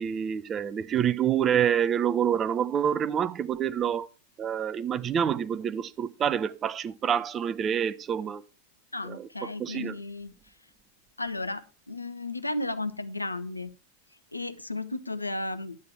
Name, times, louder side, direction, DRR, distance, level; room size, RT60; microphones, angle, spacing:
voice 1, 0.0-4.1 4.4-8.4 9.0-10.0, right 8 dB, 25° right, 0.6 m, -27 dB
voice 2, 8.9-10.3 11.2-13.7 14.3-15.8, left 2 dB, 85° left, 0.7 m, -34 dB
10.5 x 8.5 x 4.4 m
figure-of-eight pair, 90°, 0 cm